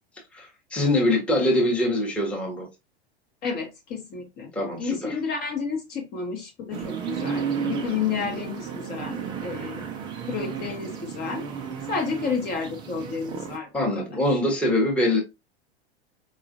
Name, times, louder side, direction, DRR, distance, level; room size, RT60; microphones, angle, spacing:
voice 1, 0.3-2.7 4.5-5.2 13.7-15.2, left 1 dB, 5° left, 0.9 m, -23 dB
voice 2, 3.4-4.5 4.8-9.8 10.3-11.4 11.9-14.0 14.3-14.4, left 5 dB, 30° left, 0.8 m, -31 dB
sound 1, 6.7-13.6, right 7 dB, 15° right, 0.3 m, -33 dB
4.1 x 2.3 x 2.6 m
figure-of-eight pair, 90°, 32 cm